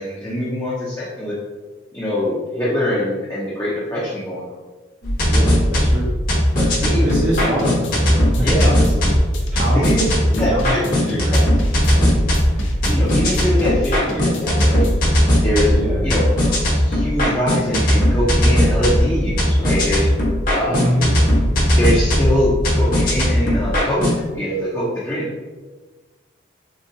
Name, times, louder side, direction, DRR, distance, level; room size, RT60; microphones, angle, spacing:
voice 1, 0.0-1.4 1.9-4.6 6.8-7.2 8.4-8.7 9.7-10.0 10.4-11.5 12.9-14.9 15.4-15.7 16.0-20.1 20.5-20.9 21.7-24.1 24.3-25.3, equal, 15° left, -9 dB, 0.5 m, -23 dB
sound 1, 5.0-24.2, equal, 45° left, 0.8 m, -18 dB
voice 2, 5.3-6.1 6.5-11.4 11.8-12.2 12.5-12.8 15.7-16.1 20.7-21.6, equal, 35° right, -7 dB, 0.5 m, -25 dB
sound 2, 7.1-15.1, left 1 dB, 85° left, 0.6 m, -31 dB
3.7 x 2.2 x 2.7 m, 1.3 s
head